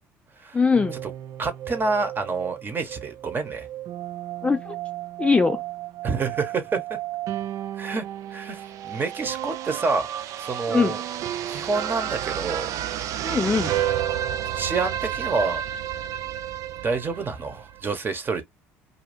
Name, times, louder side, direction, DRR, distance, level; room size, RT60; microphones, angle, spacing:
voice 1, 0.5-0.9 4.4-4.8 5.2-5.6 10.7-10.9 13.2-13.7, left 4 dB, 20° left, 0.4 m, -21 dB
sound 1, 0.7-17.8, right 11 dB, 60° right, 0.4 m, -32 dB
voice 2, 1.4-3.7 6.0-7.0 7.8-8.0 8.3-11.0 11.5-12.7 14.5-15.6 16.8-18.4, right 4 dB, 35° right, 1.1 m, -28 dB
2.7 x 2.2 x 3.4 m
supercardioid pair, 75°, 6 cm